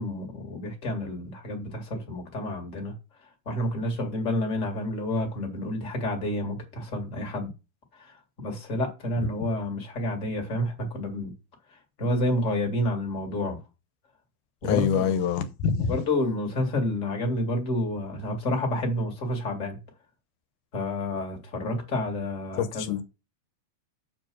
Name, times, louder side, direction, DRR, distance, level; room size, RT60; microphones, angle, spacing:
voice 1, 0.0-2.9 3.5-7.5 8.0-11.3 12.0-13.6 14.6-15.2 15.9-19.8 20.7-22.9, left 1 dB, 25° left, 2.1 m, -29 dB
voice 2, 14.6-15.9 22.6-23.0, left 7 dB, 85° left, 2.4 m, -25 dB
7.4 x 4.7 x 6.1 m
omnidirectional pair, 3.5 m